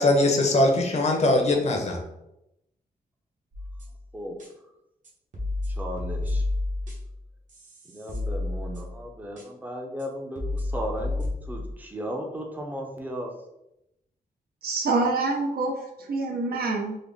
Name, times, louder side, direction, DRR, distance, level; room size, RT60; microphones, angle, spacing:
voice 1, 0.0-2.0, left 2 dB, 45° left, 2 dB, 0.7 m, -21 dB
sound 1, 3.5-4.0 4.4-4.5 5.0-7.2 7.5-9.0 9.4-9.5 10.0-10.1 10.4-11.7, left 2 dB, 50° right, 1.0 m, -31 dB
voice 2, 5.8-6.4 7.9-13.3, equal, 10° right, 1 dB, 0.6 m, -35 dB
voice 3, 14.6-17.0, right 3 dB, 75° right, 0 dB, 0.8 m, -26 dB
3.8 x 2.1 x 3.4 m, 0.85 s
wide cardioid pair, 135°, 16 cm